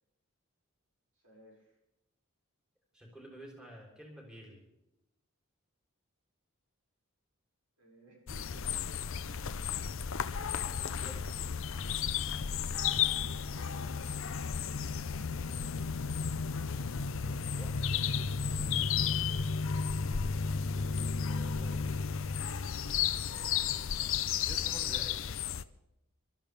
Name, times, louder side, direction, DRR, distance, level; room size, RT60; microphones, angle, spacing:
voice 1, 1.2-1.8 7.8-10.1 12.2-15.8 19.5-19.8 20.7-21.9, right 1 dB, 80° right, -1 dB, 5.7 m, -58 dB
voice 2, 2.9-4.6 10.5-11.3 17.2-17.8 21.6-21.8 22.2-22.3 23.1-23.5 24.4-25.2, right 1 dB, 5° right, -1 dB, 3.4 m, -51 dB
sound 1, 8.3-25.6, left 6 dB, 65° left, 0.6 m, -33 dB
26.5 x 13.0 x 3.4 m, 0.87 s
head